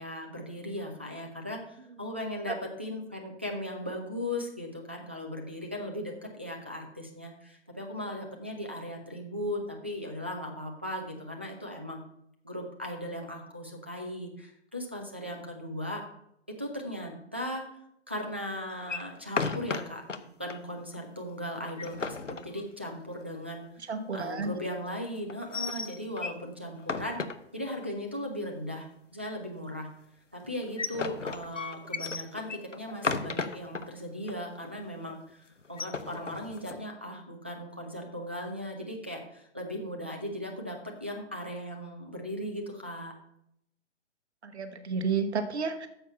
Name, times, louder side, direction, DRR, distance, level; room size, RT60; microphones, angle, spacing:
voice 1, 0.0-12.0 12.4-16.0 16.6-17.6 18.1-20.0 20.4-27.2 27.5-29.9 30.3-43.1, left 1 dB, 10° right, 0 dB, 0.3 m, -37 dB
sound 1, 18.8-20.2 20.5-20.6 20.9-21.0 21.6-23.1 25.3-26.4 26.8-27.9 30.4-33.9 34.3-34.4 34.7-35.0 35.6-36.8, left 4 dB, 90° left, 0.9 m, -34 dB
voice 2, 23.9-24.5 44.4-45.9, right 5 dB, 65° right, 8 dB, 1.1 m, -31 dB
9.7 x 6.8 x 5.4 m, 0.77 s
figure-of-eight pair, 130°, 36 cm